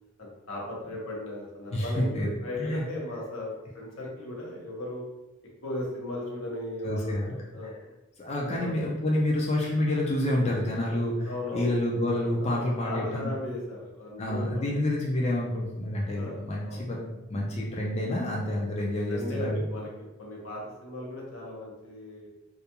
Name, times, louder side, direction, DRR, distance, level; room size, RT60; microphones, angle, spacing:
voice 1, 0.2-5.0 5.6-7.8 8.4-9.1 11.3-11.7 12.4-14.7 16.1-16.8 19.1-19.9 20.2-22.3, left 1 dB, 85° left, -3 dB, 0.8 m, -37 dB
voice 2, 1.7-2.3 2.6-2.8 6.8-7.4 8.2-13.3 14.2-19.6, left 1 dB, 30° left, -3 dB, 0.4 m, -28 dB
2.3 x 2.2 x 2.8 m, 1.0 s
head